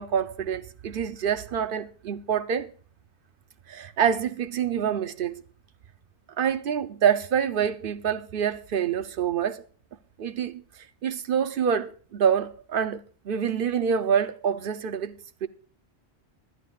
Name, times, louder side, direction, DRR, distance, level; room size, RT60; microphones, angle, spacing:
voice 1, 0.0-2.7 3.7-5.4 6.4-9.6 10.2-10.6 11.0-15.5, right 8 dB, 55° right, 0.9 m, -26 dB
19.5 x 11.5 x 2.4 m
omnidirectional pair, 1.1 m